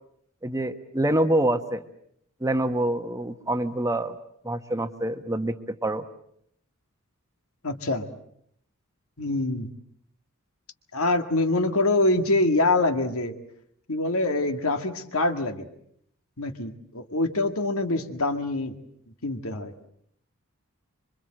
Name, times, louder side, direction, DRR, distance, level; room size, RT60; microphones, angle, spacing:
voice 1, 0.4-1.8 2.4-4.2 4.4-5.6 5.8-6.0, right 1 dB, 15° right, 9 dB, 1.1 m, -26 dB
voice 2, 7.6-8.1 9.2-9.7 10.9-13.3 13.9-15.7 16.4-18.8 19.2-19.7, left 2 dB, 70° left, 7 dB, 1.9 m, -25 dB
26.5 x 24.0 x 7.7 m, 0.70 s
head